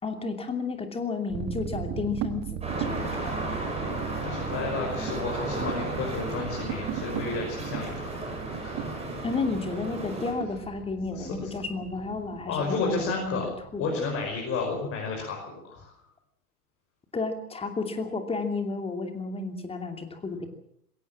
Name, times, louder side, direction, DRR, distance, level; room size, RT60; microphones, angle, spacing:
voice 1, 0.0-3.3 9.2-13.4 13.7-13.8 17.1-20.5, left 4 dB, 10° left, 6 dB, 2.8 m, -32 dB
sound 1, 1.3-14.9, right 10 dB, 35° right, 1.9 m, -37 dB
sound 2, 2.6-10.3, right 1 dB, 15° right, 7.7 m, -34 dB
voice 2, 4.2-8.1 8.4-8.8 11.1-11.5 12.5-13.4 13.8-15.9, left 4 dB, 30° left, 0 dB, 5.8 m, -32 dB
21.5 x 17.5 x 7.5 m, 0.72 s
figure-of-eight pair, 95°, 46 cm